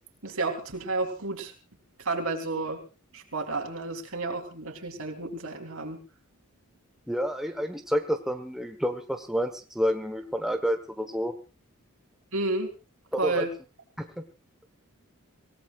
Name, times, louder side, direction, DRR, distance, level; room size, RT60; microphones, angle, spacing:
voice 1, 0.2-1.5 2.1-2.8 3.1-6.0 12.3-12.7 13.2-13.5, right 3 dB, 75° right, 3 dB, 3.7 m, -31 dB
voice 2, 7.1-11.3 13.1-13.4 14.0-14.2, equal, ahead, 5 dB, 1.3 m, -29 dB
25.5 x 18.0 x 2.5 m, 0.32 s
head